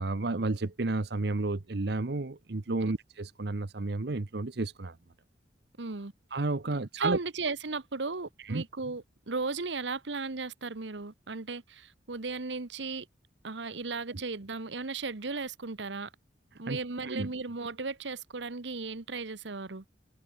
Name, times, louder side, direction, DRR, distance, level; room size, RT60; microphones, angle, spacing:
voice 1, 0.0-5.0 6.3-7.2 8.4-8.6 14.1-14.2 16.7-16.8 17.0-17.3, right 2 dB, 65° right, 0.9 m, -31 dB
voice 2, 5.8-6.1 7.0-13.1 13.4-16.1 16.6-19.8, right 4 dB, 80° right, 1.2 m, -36 dB
head